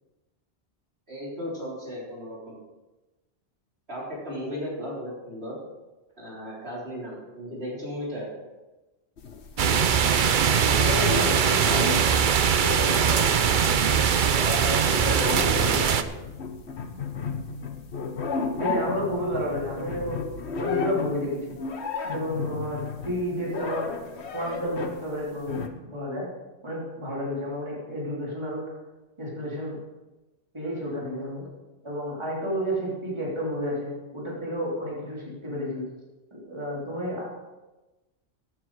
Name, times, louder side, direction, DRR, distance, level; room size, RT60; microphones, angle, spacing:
voice 1, 1.1-2.6 3.9-5.6 6.2-8.3 12.7-13.6 14.8-16.0, equal, 70° right, -5 dB, 4.2 m, -36 dB
sound 1, 9.2-10.2 10.6-12.1 12.4-25.0 25.5-25.7, left 5 dB, 85° left, 1.3 m, -33 dB
sound 2, 9.6-16.0, right 7 dB, 55° right, 0.8 m, -21 dB
voice 2, 10.5-12.0 15.3-15.8 18.6-20.3 20.6-21.6 22.1-23.9 24.3-25.6 25.9-26.3 26.6-28.6 29.2-29.8 30.5-31.5 31.8-35.8 36.3-37.4, equal, 25° right, -5 dB, 3.5 m, -31 dB
14.5 x 9.4 x 4.8 m, 1.1 s
omnidirectional pair, 1.1 m